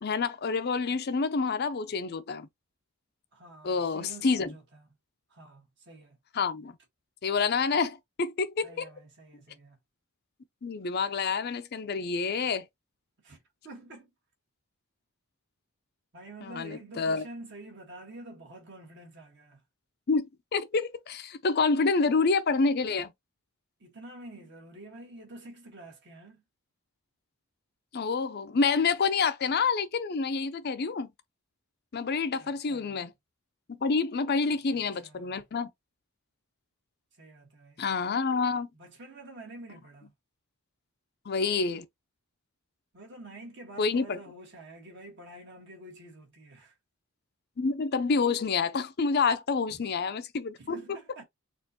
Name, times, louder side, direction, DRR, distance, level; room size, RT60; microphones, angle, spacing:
voice 1, 0.0-2.5 3.6-4.5 6.3-6.7 7.2-8.9 10.6-12.7 16.4-17.2 20.1-23.1 27.9-31.1 31.9-33.1 33.7-35.7 37.8-38.7 41.3-41.9 43.8-44.2 47.6-50.8, left 4 dB, 45° left, 0.5 m, -28 dB
voice 2, 3.3-4.8 5.3-6.2 8.6-9.8 13.2-14.1 16.1-19.6 23.8-26.4 32.4-33.0 34.7-35.4 37.1-37.8 38.7-40.1 42.9-46.7 49.7-49.8 50.6-51.2, right 2 dB, 50° right, 1.5 m, -48 dB
4.3 x 2.4 x 2.8 m
head